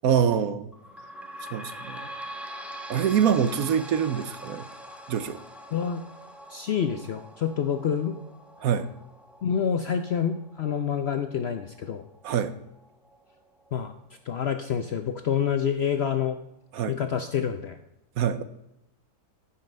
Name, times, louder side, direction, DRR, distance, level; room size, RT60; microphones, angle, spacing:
voice 1, 0.0-0.7 1.5-2.1 2.9-4.7 5.1-5.4 8.6-8.9 12.2-12.5 16.7-17.0 18.2-18.4, right 8 dB, 70° right, 12 dB, 1.1 m, -25 dB
sound 1, 0.7-13.9 14.4-14.5 14.8-14.9 15.7-15.8, equal, ahead, 0.7 m, -44 dB
voice 2, 5.7-6.0 6.5-8.1 9.4-12.0 13.7-13.9 14.3-16.4 16.9-17.8, left 8 dB, 60° left, 8 dB, 0.7 m, -27 dB
14.5 x 5.7 x 5.2 m, 0.86 s
omnidirectional pair, 1.7 m